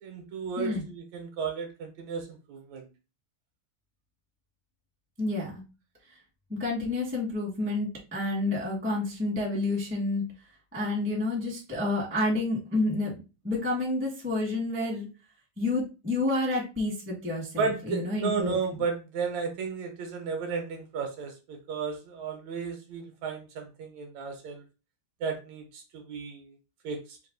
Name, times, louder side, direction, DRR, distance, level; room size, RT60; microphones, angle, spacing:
voice 1, 0.0-2.9 17.6-24.6 25.2-26.6 26.8-27.0, right 5 dB, 75° right, 4 dB, 1.9 m, -33 dB
voice 2, 0.6-0.9 5.2-5.6 6.5-10.3 10.7-13.2 13.4-15.1 15.6-18.6, left 2 dB, 10° right, -3 dB, 0.6 m, -29 dB
4.7 x 2.3 x 3.8 m, 0.30 s
omnidirectional pair, 3.5 m